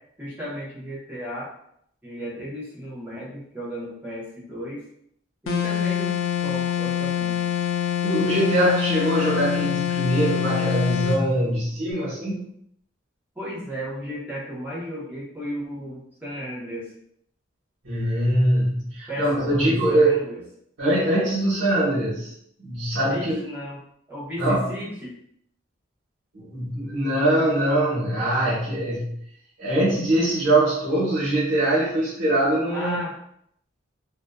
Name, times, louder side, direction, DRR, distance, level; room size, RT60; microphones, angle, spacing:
voice 1, 0.2-1.5 2.0-4.8 5.4-7.5 13.4-16.9 19.1-20.4 23.1-23.8 24.1-25.2 32.7-33.1, equal, 10° right, -7 dB, 0.8 m, -34 dB
sound 1, 5.5-11.2, left 10 dB, 75° left, 0.4 m, -25 dB
voice 2, 8.0-12.5 17.8-20.2 20.8-22.3 22.6-23.4 24.4-24.7 26.3-29.1 29.6-33.0, right 1 dB, 75° right, -10 dB, 1.1 m, -22 dB
2.5 x 2.4 x 2.2 m, 0.70 s
head